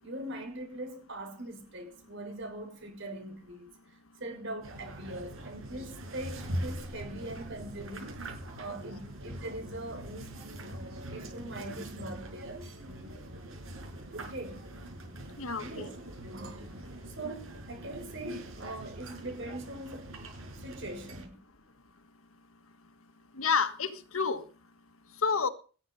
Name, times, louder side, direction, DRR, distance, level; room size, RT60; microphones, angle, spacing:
voice 1, 0.0-12.7 14.1-14.7 15.6-16.0 16.2-16.8 17.0-20.1 20.6-21.4, right 1 dB, 60° right, 6.4 m, -42 dB
sound 1, 4.6-21.2, right 1 dB, 75° right, 6.3 m, -43 dB
voice 2, 15.4-15.9 23.4-24.4 25.2-25.5, left 5 dB, 80° left, 1.5 m, -29 dB
19.5 x 9.6 x 5.6 m
head